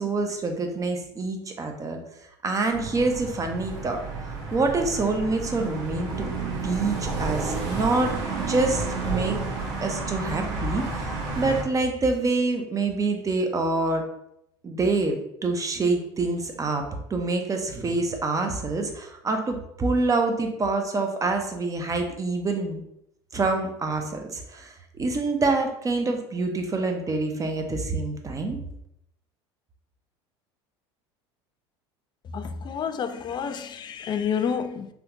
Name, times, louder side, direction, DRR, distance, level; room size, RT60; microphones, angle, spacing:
voice 1, 0.0-2.0 2.4-4.0 4.5-6.3 6.6-9.4 9.8-14.1 14.6-22.8 23.3-28.6, right 3 dB, 25° right, 0.6 m, -26 dB
sound 1, 2.7-11.6, right 3 dB, 60° right, 1.3 m, -31 dB
voice 2, 32.3-34.9, left 7 dB, 30° left, 0.4 m, -29 dB
3.4 x 2.4 x 2.9 m
hypercardioid pair, 85°, 14 cm